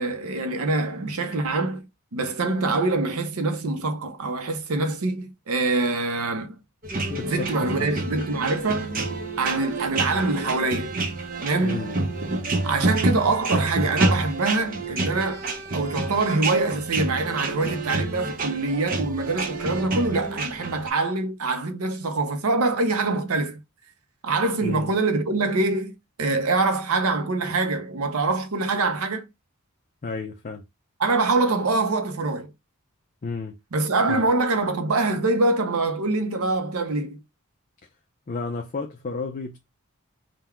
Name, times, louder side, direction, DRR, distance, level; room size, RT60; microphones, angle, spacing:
voice 1, 0.0-1.8 2.1-6.6 7.2-9.0 9.4-11.0 11.4-11.9 12.6-15.4 15.7-23.6 24.2-29.3 31.0-32.5 33.7-37.2, right 3 dB, 80° right, 0.7 m, -24 dB
sound 1, 6.8-20.9, right 2 dB, 40° right, 0.7 m, -28 dB
voice 2, 7.1-8.0 11.6-12.0 24.6-24.9 30.0-30.6 33.2-33.6 34.1-34.3 38.3-39.6, left 4 dB, 35° left, 0.4 m, -32 dB
3.8 x 2.2 x 4.3 m
head